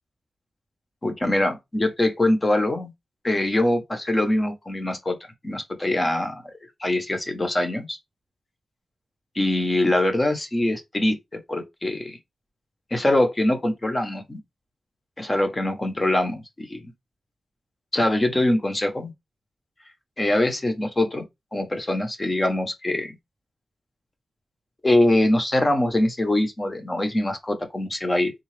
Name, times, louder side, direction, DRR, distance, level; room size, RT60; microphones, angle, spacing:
voice 1, 1.0-2.9 3.2-5.1 5.4-6.4 6.8-8.0 9.3-11.2 11.5-12.2 12.9-14.4 15.2-16.9 17.9-19.1 20.2-21.2 21.5-23.1 24.8-28.3, left 1 dB, 25° left, 0.8 m, -23 dB
3.7 x 2.3 x 3.2 m
wide cardioid pair, 105°, 0 cm